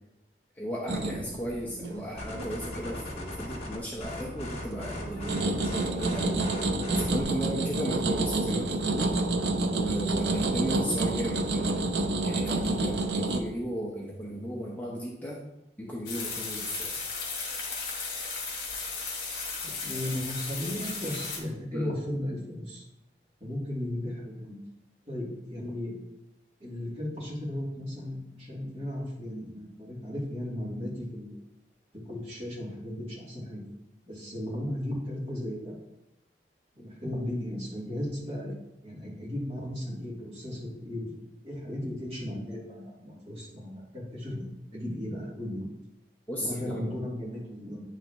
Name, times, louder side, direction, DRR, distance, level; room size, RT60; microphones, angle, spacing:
voice 1, 0.6-6.4 6.9-9.2 9.8-11.6 12.2-15.4 15.8-17.0 21.7-22.0 46.3-46.9, equal, 10° left, -3 dB, 0.8 m, -35 dB
sound 1, 0.9-3.1 3.4-4.0 4.4-13.4, right 2 dB, 80° right, 0.7 m, -29 dB
sound 2, 2.2-7.2, left 1 dB, 35° left, 1.4 m, -38 dB
sound 3, 16.1-21.4, left 4 dB, 55° left, 2.3 m, -35 dB
voice 2, 19.6-22.8 23.4-24.6 25.1-25.9 26.6-31.4 32.0-33.6 34.1-35.7 36.7-38.5 38.8-41.2 41.4-45.7 46.4-47.8, left 1 dB, 35° right, -7 dB, 2.7 m, -35 dB
9.4 x 5.8 x 3.0 m, 0.89 s
head